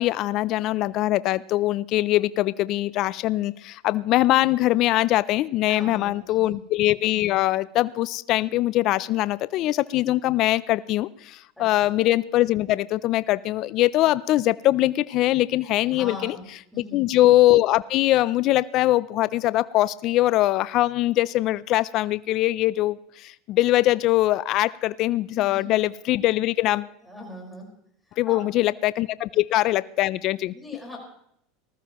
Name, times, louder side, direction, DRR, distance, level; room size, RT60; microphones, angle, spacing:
voice 1, 0.0-16.4 16.9-26.9 28.2-30.5, left 16 dB, 50° left, 18 dB, 0.4 m, -22 dB
voice 2, 5.7-6.6 11.6-11.9 15.9-16.5 16.7-17.0 25.3-25.7 27.0-27.7 28.3-28.4 30.5-31.0, left 2 dB, 5° left, -2 dB, 4.8 m, -40 dB
19.5 x 13.5 x 3.0 m, 0.73 s
supercardioid pair, 120°, 0 cm